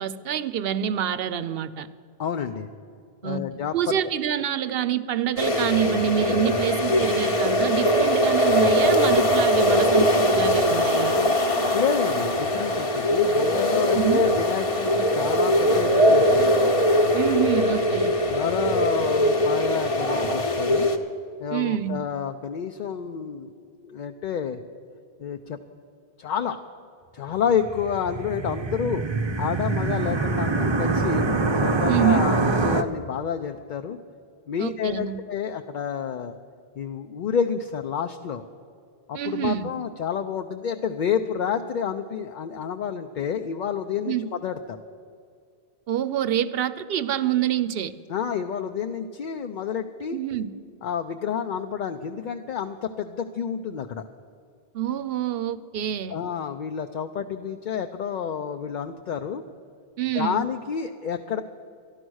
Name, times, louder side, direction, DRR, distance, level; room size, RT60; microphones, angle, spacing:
voice 1, 0.0-1.9 3.2-3.4 3.7-11.2 13.9-14.2 17.1-18.1 21.5-22.0 31.9-32.2 34.6-35.2 39.1-39.7 44.1-44.2 45.9-47.9 50.1-50.5 54.7-56.2 60.0-60.4, right 10 dB, 75° right, 13 dB, 0.8 m, -26 dB
voice 2, 2.2-2.7 3.2-4.0 11.7-16.5 18.3-20.9 21.4-24.6 25.2-25.6 26.2-26.6 27.1-29.1 29.4-31.3 31.5-34.0 34.5-36.4 36.8-38.4 39.1-44.1 44.4-44.8 48.1-50.2 50.8-54.0 56.1-59.4 60.1-61.4, left 7 dB, 60° left, 6 dB, 0.6 m, -29 dB
sound 1, 5.4-21.0, equal, 35° left, 0.8 m, -21 dB
sound 2, 27.6-32.8, right 3 dB, 35° right, 0.6 m, -24 dB
13.0 x 11.5 x 6.2 m, 2.3 s
omnidirectional pair, 1.0 m